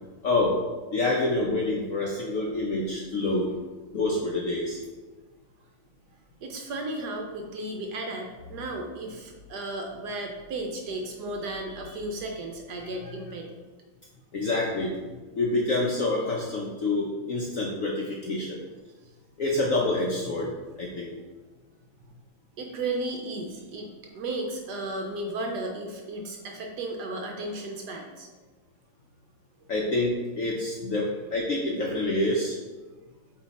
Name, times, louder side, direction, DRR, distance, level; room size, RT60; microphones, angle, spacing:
voice 1, 0.2-0.5 0.9-3.5 3.9-4.8 14.3-15.0 15.3-18.6 19.4-21.1 29.7-32.6, left 2 dB, 65° left, -3 dB, 0.8 m, -27 dB
voice 2, 6.4-13.5 22.0-22.1 22.6-28.3, right 2 dB, 65° right, 2 dB, 1.1 m, -34 dB
7.3 x 3.2 x 4.1 m, 1.3 s
omnidirectional pair, 2.1 m